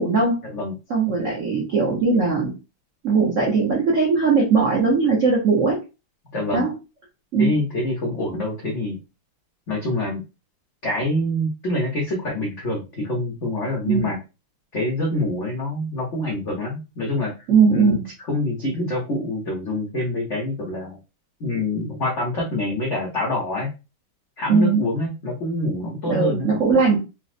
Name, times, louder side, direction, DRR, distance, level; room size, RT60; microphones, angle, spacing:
voice 1, 0.0-0.4 0.9-2.5 3.0-5.8 6.5-6.7 7.3-7.5 13.9-14.1 17.5-18.0 24.5-24.8 26.1-27.0, right 4 dB, 75° right, -3 dB, 0.7 m, -19 dB
voice 2, 6.3-6.7 7.4-9.0 9.7-10.2 10.8-14.2 14.7-17.3 17.7-18.0 18.3-21.0 21.4-23.7 24.4-26.5, left 1 dB, 80° left, -2 dB, 0.6 m, -26 dB
3.9 x 2.0 x 2.4 m, 0.29 s
omnidirectional pair, 2.4 m